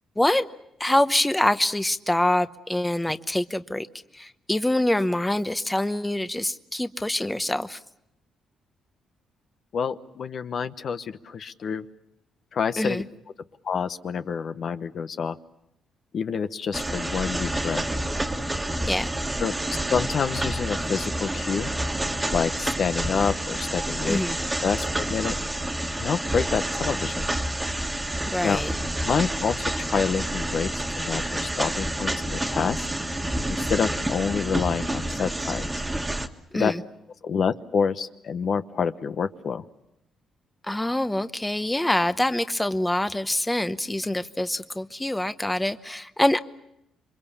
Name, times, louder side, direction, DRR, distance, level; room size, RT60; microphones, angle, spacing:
voice 1, 0.2-0.5 0.8-3.9 4.1-7.8 12.8-13.0 18.9-19.1 24.0-24.4 28.3-28.7 36.5-36.8 40.7-46.4, left 1 dB, 10° left, 11 dB, 0.9 m, -25 dB
voice 2, 9.7-11.9 12.5-13.0 13.6-15.4 16.1-17.8 19.4-19.5 19.9-21.7 22.3-24.2 24.6-25.3 26.0-27.3 28.4-28.6 29.1-30.7 31.0-32.8 33.5-35.7 36.5-36.7 37.2-39.6, left 6 dB, 55° left, 10 dB, 0.9 m, -27 dB
sound 1, 16.7-36.3, right 1 dB, 15° right, 1.7 m, -29 dB
27.5 x 24.0 x 7.1 m, 0.84 s
cardioid pair, 90°, 0 cm